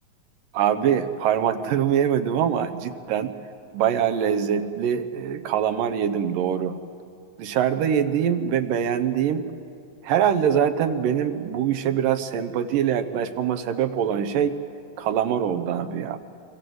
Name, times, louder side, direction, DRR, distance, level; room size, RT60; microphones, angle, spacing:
voice 1, 0.5-3.3 3.7-6.8 7.4-9.5 10.0-14.6 15.0-16.2, right 9 dB, 75° right, 9 dB, 2.6 m, -23 dB
27.5 x 24.0 x 7.8 m, 2.5 s
omnidirectional pair, 4.1 m